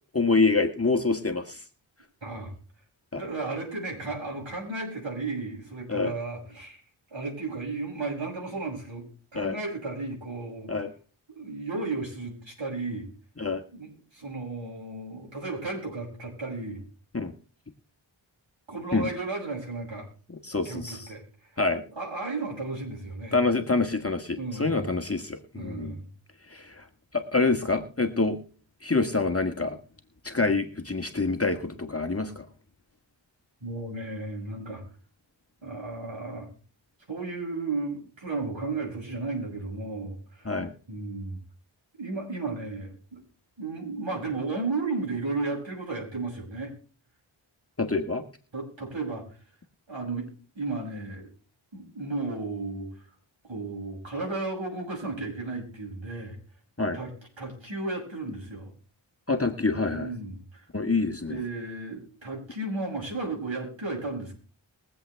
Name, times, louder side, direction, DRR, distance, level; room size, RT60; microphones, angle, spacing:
voice 1, 0.1-1.6 3.1-3.2 5.9-6.1 9.3-9.6 10.7-10.9 13.4-13.6 17.1-17.3 18.9-19.1 20.4-21.1 21.6-21.8 23.3-25.9 26.5-26.8 27.1-28.4 28.8-29.8 30.2-32.4 40.4-40.7 47.8-48.2 56.8-57.0 59.3-60.1 60.7-61.4, left 3 dB, 30° left, 5 dB, 1.6 m, -26 dB
voice 2, 2.2-2.5 3.2-6.8 7.1-10.8 11.3-13.1 13.7-16.9 18.7-20.1 20.7-21.6 21.9-23.4 24.4-25.0 25.5-26.1 33.6-34.8 35.6-36.5 37.1-40.5 40.9-41.4 41.9-43.2 43.6-46.7 48.5-49.2 49.9-50.3 50.6-51.3 51.7-53.1 53.4-56.4 56.8-57.1 57.4-58.7 59.9-60.7 61.3-64.3, right 3 dB, 65° right, -2 dB, 7.2 m, -34 dB
22.5 x 7.8 x 3.4 m, 0.39 s
cardioid pair, 40°, 49 cm